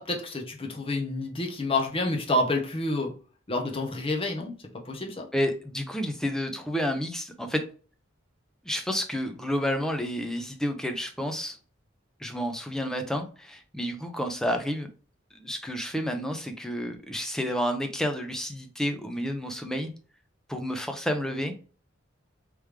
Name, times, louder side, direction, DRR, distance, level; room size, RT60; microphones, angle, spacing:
voice 1, 0.0-3.1 3.5-4.5 4.9-5.3, left 2 dB, 30° left, 2 dB, 0.9 m, -28 dB
voice 2, 5.3-7.6 8.6-11.6 12.2-14.9 15.3-19.9 20.5-21.5, equal, 5° left, 5 dB, 0.6 m, -30 dB
3.4 x 3.3 x 3.2 m, 0.38 s
head